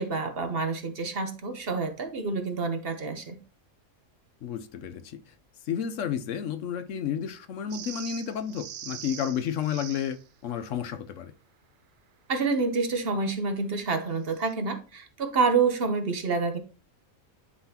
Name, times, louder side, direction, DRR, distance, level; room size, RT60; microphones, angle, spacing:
voice 1, 0.0-3.4 12.3-16.6, right 4 dB, 50° right, 1.1 m, -28 dB
voice 2, 4.4-5.2 5.7-10.2 10.4-11.3, left 8 dB, 70° left, 1.0 m, -31 dB
sound 1, 7.7-10.2 14.3-14.5, right 9 dB, 70° right, 0.5 m, -42 dB
11.0 x 3.9 x 2.8 m
omnidirectional pair, 1.4 m